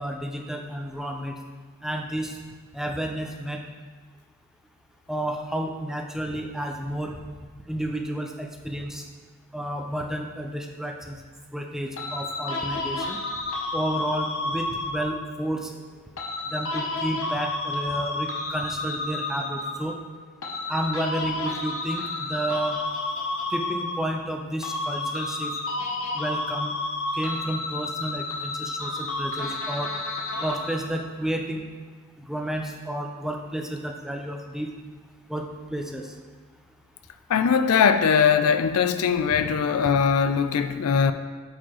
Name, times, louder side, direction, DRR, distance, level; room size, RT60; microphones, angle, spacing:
voice 1, 0.0-1.4 1.8-2.4 2.7-3.6 5.1-7.2 7.7-9.0 9.5-11.2 11.5-13.2 13.7-15.7 16.5-19.9 20.7-22.8 23.5-25.5 26.1-26.7 27.1-29.9 30.4-31.6 32.3-34.7 35.3-36.1 39.3-39.4, right 1 dB, ahead, 2 dB, 0.4 m, -31 dB
sound 1, 12.0-15.3 16.2-20.0 20.4-24.4 24.6-31.0, left 2 dB, 65° left, 0.8 m, -31 dB
voice 2, 37.3-41.1, left 6 dB, 85° left, 11 dB, 0.4 m, -21 dB
8.4 x 4.6 x 3.0 m, 1.4 s
head